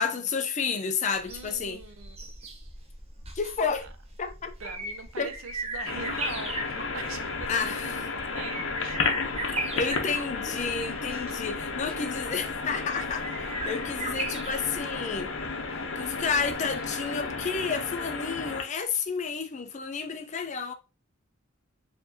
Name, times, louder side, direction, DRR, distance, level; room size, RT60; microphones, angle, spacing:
voice 1, 0.0-1.8 3.3-3.9 4.2-4.5 5.2-5.3 7.5-8.1 9.4-15.3 16.0-20.7, left 5 dB, 35° left, 0.4 m, -31 dB
sound 1, 1.2-17.1 17.4-17.5, right 1 dB, 30° right, 0.7 m, -38 dB
voice 2, 1.2-2.2 3.8-3.9 4.6-7.5 7.8-9.2 10.4-10.7 11.9-12.0, right 5 dB, 85° right, 0.7 m, -42 dB
sound 2, 5.9-18.6, left 4 dB, 70° left, 0.7 m, -33 dB
4.5 x 2.7 x 2.7 m
head